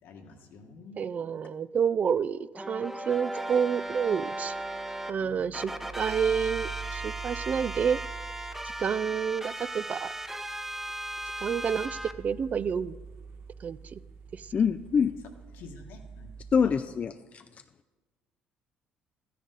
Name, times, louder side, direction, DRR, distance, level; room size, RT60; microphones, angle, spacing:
voice 1, 0.0-1.0 5.2-5.7 15.5-16.3 16.6-16.7, left 4 dB, 75° left, 3 dB, 1.6 m, -49 dB
voice 2, 1.0-4.5 5.1-5.7 6.0-8.0 8.8-10.1 11.4-12.9 13.6-14.0 14.3-14.4, right 7 dB, 45° right, 17 dB, 0.4 m, -29 dB
sound 1, 2.5-5.1 5.5-12.1, right 1 dB, 10° right, 0.8 m, -37 dB
sound 2, 3.9-16.8, right 6 dB, 70° right, 1.2 m, -46 dB
voice 3, 14.5-15.1 16.5-17.4, left 6 dB, 40° left, 9 dB, 0.3 m, -25 dB
13.0 x 10.0 x 3.9 m, 1.3 s
supercardioid pair, 80°, 4 cm